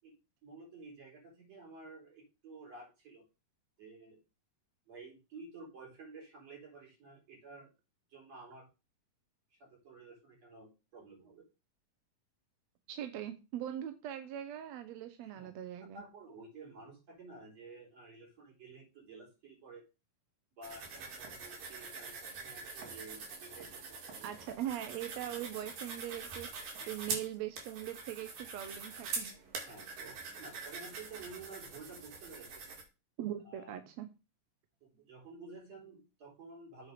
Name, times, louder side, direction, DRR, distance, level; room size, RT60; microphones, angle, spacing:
voice 1, 0.4-3.2 3.8-4.2 4.9-7.7 8.1-8.7 9.5-11.5 15.2-15.5 15.9-19.8 20.6-24.3 26.8-26.9 29.7-32.6 33.5-33.8 34.8-36.9, right 3 dB, 50° right, -2 dB, 5.4 m, -52 dB
voice 2, 12.9-16.0 24.2-29.4 33.2-34.1, right 11 dB, 70° right, 8 dB, 1.8 m, -41 dB
sound 1, 20.6-32.8, right 4 dB, 90° right, 3.9 m, -44 dB
8.2 x 4.7 x 6.7 m, 0.29 s
omnidirectional pair, 3.8 m